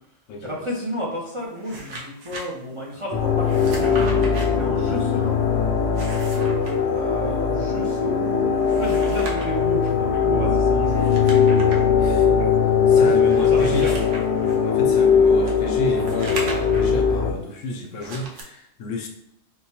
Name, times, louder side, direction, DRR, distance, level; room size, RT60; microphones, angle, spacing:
voice 1, 0.4-4.3 4.6-5.4 6.9-11.5 12.9-13.1 13.4-13.9, equal, 35° right, -4 dB, 0.5 m, -32 dB
sound 1, 1.4-2.4 3.4-4.5 5.8-6.7 8.5-9.6 10.9-11.9 12.4-12.5 13.2-14.6 15.4-16.9 17.9-18.4, right 2 dB, 75° right, 1.1 m, -36 dB
sound 2, 3.1-17.3, left 6 dB, 70° left, 0.9 m, -20 dB
sound 3, 3.2-8.0, left 2 dB, 35° left, 0.7 m, -35 dB
voice 2, 12.0-12.3 12.9-14.1 14.6-19.1, left 2 dB, 85° left, 3 dB, 1.0 m, -31 dB
4.6 x 2.2 x 2.9 m, 0.76 s
omnidirectional pair, 1.3 m